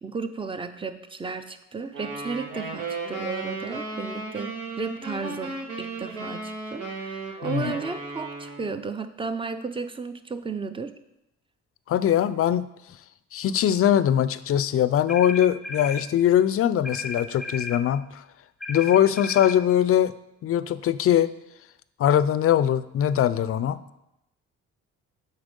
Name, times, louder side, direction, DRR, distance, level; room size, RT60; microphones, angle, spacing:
voice 1, 0.0-10.9, right 4 dB, 15° right, 10 dB, 0.5 m, -34 dB
sound 1, 1.9-8.8, right 3 dB, 90° right, 1.7 m, -35 dB
voice 2, 7.4-7.7 11.9-12.6 13.3-18.2 18.7-20.1 20.4-21.3 22.0-23.8, left 10 dB, 50° left, 15 dB, 0.4 m, -21 dB
sound 2, 15.1-16.1 16.8-17.8 18.6-19.6, left 3 dB, ahead, 0.9 m, -34 dB
7.2 x 4.4 x 5.3 m, 0.86 s
cardioid pair, 90°, 30 cm